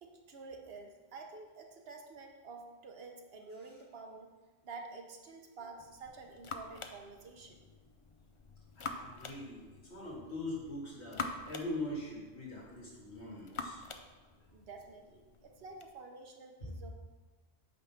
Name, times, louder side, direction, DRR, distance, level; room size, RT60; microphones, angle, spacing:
voice 1, 0.0-4.3 4.6-7.6 14.5-16.9, right 4 dB, 70° right, 2 dB, 1.1 m, -49 dB
sound 1, 5.8-15.9, left 4 dB, 45° left, 0.4 m, -47 dB
voice 2, 8.8-13.8 16.6-16.7, left 1 dB, 85° left, -5 dB, 2.3 m, -42 dB
8.7 x 3.7 x 5.8 m, 1.3 s
omnidirectional pair, 1.1 m